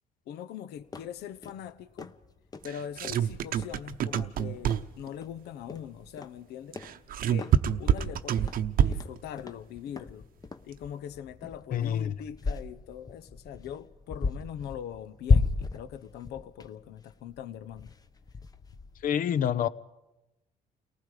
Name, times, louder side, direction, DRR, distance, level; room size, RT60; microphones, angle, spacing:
voice 1, 0.3-2.1 2.6-6.8 7.3-8.6 8.8-10.2 10.6-17.9, left 9 dB, 75° left, 0.9 m, -42 dB
sound 1, 0.8-19.1, left 4 dB, 20° left, 0.9 m, -35 dB
sound 2, 2.6-5.1 6.7-9.2, right 9 dB, 60° right, 0.9 m, -27 dB
voice 2, 11.7-12.1 19.0-19.7, left 9 dB, 55° left, 0.8 m, -27 dB
29.5 x 19.5 x 5.0 m
cardioid pair, 110°, 17 cm